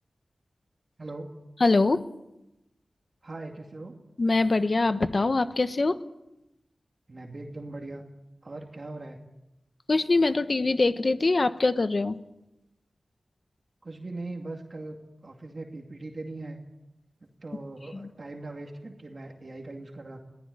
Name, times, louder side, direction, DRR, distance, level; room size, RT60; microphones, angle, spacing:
voice 1, 1.6-2.1 4.2-6.0 9.9-12.2 17.9-18.1, left 3 dB, 50° left, 11 dB, 1.2 m, -23 dB
voice 2, 3.2-3.9 7.1-8.0 8.4-9.2 13.8-15.0 15.2-16.6 17.2-20.2, right 2 dB, 45° right, 2 dB, 2.3 m, -40 dB
22.0 x 15.0 x 9.7 m, 0.93 s
wide cardioid pair, 75°, 0 cm